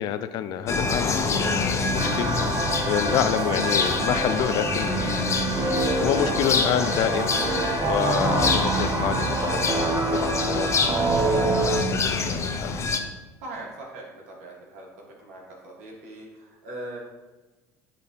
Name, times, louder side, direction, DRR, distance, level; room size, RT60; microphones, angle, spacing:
voice 1, 0.0-5.2 5.6-5.7 6.0-7.4 7.8-10.8 11.2-11.6 11.8-12.7, left 10 dB, 55° left, 11 dB, 0.4 m, -28 dB
sound 1, 0.7-13.0, left 4 dB, 35° left, 0.8 m, -26 dB
sound 2, 2.0-11.8, right 3 dB, 35° right, 0.8 m, -27 dB
voice 2, 11.5-12.4 13.4-14.9 15.2-17.0, right 2 dB, 80° right, -2 dB, 1.9 m, -41 dB
10.0 x 3.9 x 3.0 m, 1.2 s
hypercardioid pair, 75°, 8 cm